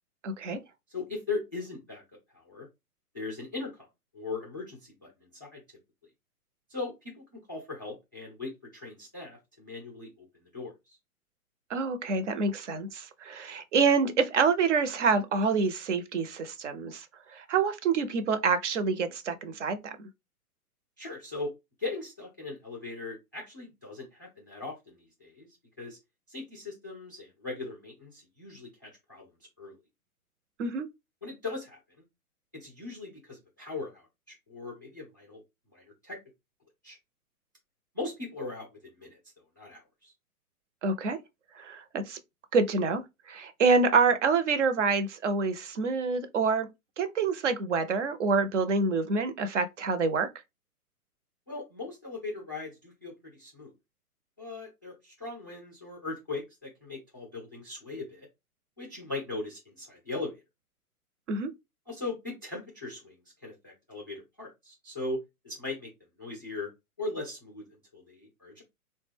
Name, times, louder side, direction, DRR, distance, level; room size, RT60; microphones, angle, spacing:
voice 1, 0.2-0.6 11.7-17.1 17.3-20.1 30.6-30.9 40.8-41.2 41.6-42.2 42.5-43.0 43.3-46.7 47.0-50.3 61.3-61.5, right 4 dB, 55° right, 0.6 m, -27 dB
voice 2, 0.9-2.0 2.3-2.7 3.1-3.9 4.1-5.6 6.7-11.0 21.0-21.5 21.8-25.5 25.8-26.0 26.3-29.3 29.6-29.8 31.2-31.8 32.5-35.4 35.7-36.2 36.8-37.0 37.9-39.2 39.6-40.1 51.5-53.7 54.4-58.3 58.8-60.4 61.9-63.2 63.4-65.9 66.2-66.7 67.0-68.6, left 3 dB, 15° left, 0.3 m, -39 dB
3.7 x 2.2 x 3.3 m
figure-of-eight pair, 120°, 45 cm